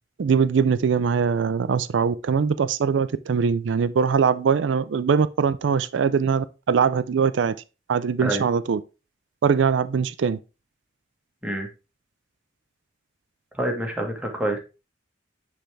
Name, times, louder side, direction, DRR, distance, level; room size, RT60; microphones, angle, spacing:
voice 1, 0.2-7.5 7.9-8.8 9.4-10.4, right 6 dB, 70° right, 0.4 m, -22 dB
voice 2, 13.6-14.6, right 1 dB, 5° right, 1.5 m, -27 dB
10.0 x 3.4 x 3.3 m
head